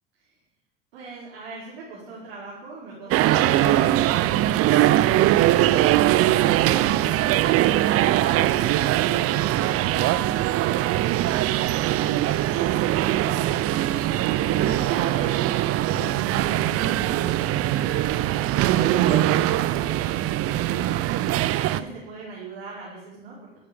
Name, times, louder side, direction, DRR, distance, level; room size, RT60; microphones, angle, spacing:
voice 1, 0.9-15.4 15.7-23.4, right 3 dB, 80° right, -6 dB, 4.7 m, -40 dB
sound 1, 3.1-21.8, right 14 dB, 50° right, 0.8 m, -21 dB
13.5 x 13.0 x 5.3 m, 0.93 s
hypercardioid pair, 80°, 29 cm